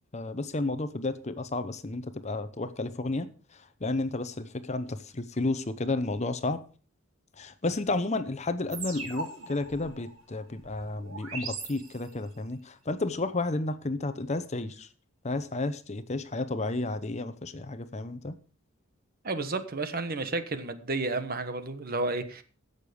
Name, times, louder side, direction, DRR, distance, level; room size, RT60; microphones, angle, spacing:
voice 1, 0.1-3.3 3.8-6.6 7.4-14.9 15.2-18.3, left 2 dB, 35° left, 0.8 m, -32 dB
sound 1, 8.7-12.4, right 3 dB, 75° right, 4.4 m, -40 dB
voice 2, 19.2-22.4, right 3 dB, 45° right, 1.2 m, -31 dB
16.5 x 6.8 x 5.1 m
head